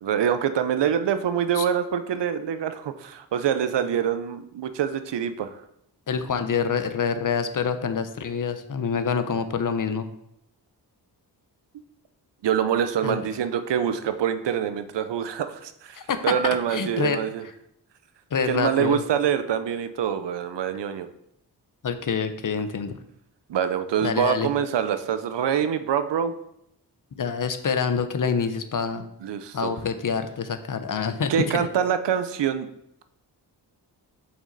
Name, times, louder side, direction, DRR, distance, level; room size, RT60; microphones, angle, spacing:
voice 1, 0.0-5.6 12.4-16.0 16.2-17.4 18.5-21.1 23.5-26.4 29.2-29.7 31.3-32.7, right 8 dB, 80° right, 10 dB, 0.7 m, -25 dB
voice 2, 6.1-10.1 13.0-13.3 15.9-17.5 18.3-19.0 21.8-22.9 24.0-24.5 27.1-29.0 29.5-31.7, left 6 dB, 50° left, 9 dB, 0.8 m, -26 dB
6.2 x 6.1 x 4.0 m, 0.77 s
cardioid pair, 70°, 42 cm